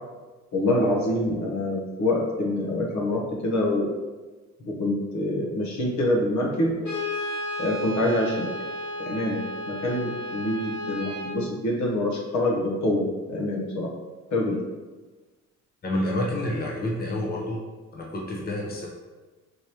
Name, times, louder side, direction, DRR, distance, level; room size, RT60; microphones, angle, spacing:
voice 1, 0.5-3.9 4.7-6.8 7.6-8.5 9.0-13.9 14.3-14.6, left 1 dB, 65° left, -2 dB, 1.0 m, -26 dB
Brass instrument, 6.8-11.4, left 1 dB, 85° left, 1.4 m, -33 dB
voice 2, 15.8-17.6 17.9-18.9, left 1 dB, 30° left, -2 dB, 0.8 m, -29 dB
4.7 x 3.2 x 2.9 m, 1.3 s
cardioid pair, 90°, 30 cm